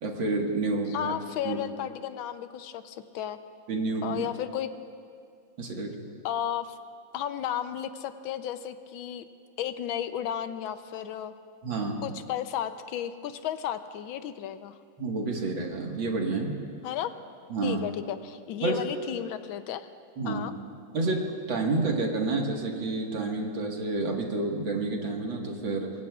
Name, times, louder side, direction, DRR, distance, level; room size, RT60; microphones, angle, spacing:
voice 1, 0.0-1.1 1.5-1.6 3.7-4.2 5.6-6.0 11.6-12.1 15.0-16.6 17.5-17.8 18.6-18.8 20.2-20.5 20.9-25.9, right 3 dB, 70° right, 1 dB, 2.4 m, -29 dB
voice 2, 0.9-3.4 4.0-4.7 6.2-6.8 7.1-9.3 9.6-11.3 12.0-14.8 16.8-17.1 17.6-19.9 20.3-20.5, left 10 dB, 80° left, 10 dB, 1.4 m, -33 dB
25.0 x 22.5 x 2.4 m, 2.3 s
omnidirectional pair, 2.2 m